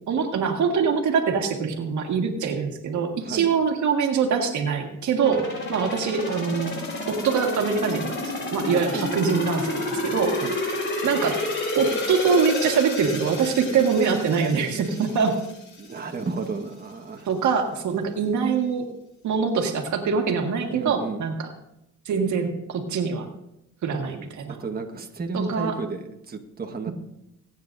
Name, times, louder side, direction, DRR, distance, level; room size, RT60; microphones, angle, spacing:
voice 1, 0.1-6.7 7.1-10.4 11.0-11.4 11.7-15.4 17.3-18.9 19.2-21.5 22.1-23.3 23.8-24.6 25.3-25.8, right 6 dB, 70° right, 3 dB, 1.8 m, -24 dB
voice 2, 3.2-3.5 8.6-9.1 10.4-10.5 15.8-17.3 20.7-21.2 24.5-26.9, right 4 dB, 30° right, 3 dB, 1.5 m, -33 dB
sound 1, 5.2-16.0 16.4-16.5, left 2 dB, 40° left, 5.5 m, -30 dB
22.0 x 9.3 x 2.6 m, 0.85 s
cardioid pair, 90°, 30 cm